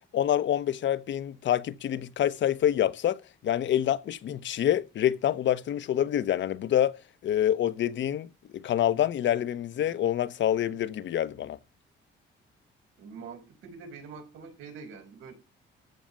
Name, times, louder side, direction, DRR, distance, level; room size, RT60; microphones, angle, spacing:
voice 1, 0.1-7.0 7.2-11.6, left 11 dB, 70° left, 1.1 m, -27 dB
voice 2, 13.0-15.3, right 5 dB, 90° right, 5.6 m, -44 dB
14.5 x 5.1 x 9.0 m
cardioid pair, 90°, 20 cm